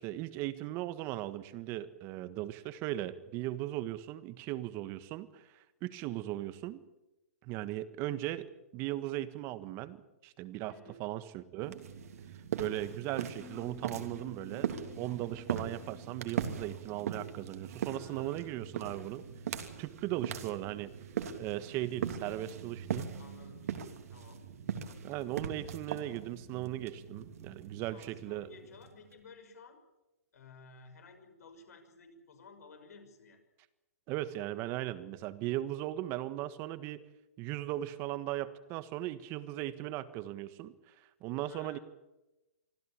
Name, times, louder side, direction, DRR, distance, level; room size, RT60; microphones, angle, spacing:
voice 1, 0.0-6.8 7.4-8.5 8.7-10.7 11.0-11.8 12.6-19.2 19.8-20.9 21.4-23.1 25.0-28.5 34.1-37.0 37.4-40.9 41.2-41.8, right 14 dB, 30° right, 13 dB, 1.4 m, -38 dB
sound 1, 11.6-29.1, right 8 dB, 65° right, 2.9 m, -40 dB
Bass guitar, 13.4-19.6, left 6 dB, 10° left, 1.6 m, -57 dB
voice 2, 18.0-18.6 23.1-24.4 27.9-29.8 30.3-33.4 41.4-41.8, left 4 dB, 75° left, 7 dB, 6.2 m, -55 dB
25.5 x 15.0 x 8.7 m, 0.99 s
hypercardioid pair, 150°, 9 cm